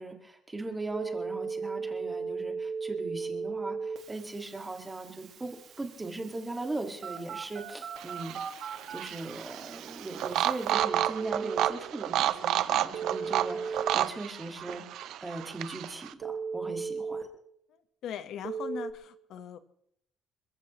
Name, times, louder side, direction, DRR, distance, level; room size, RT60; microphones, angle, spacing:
voice 1, 0.0-17.3, right 2 dB, 10° right, 4 dB, 1.9 m, -39 dB
Telephone, 0.9-11.7 12.9-13.9 16.2-17.2 18.4-18.9, right 5 dB, 45° right, 1.9 m, -37 dB
sound 1, 8.0-16.1, right 12 dB, 70° right, 0.7 m, -31 dB
voice 2, 18.0-19.6, left 9 dB, 60° left, 11 dB, 1.2 m, -39 dB
27.0 x 15.0 x 3.1 m, 0.71 s
cardioid pair, 170°, 0 cm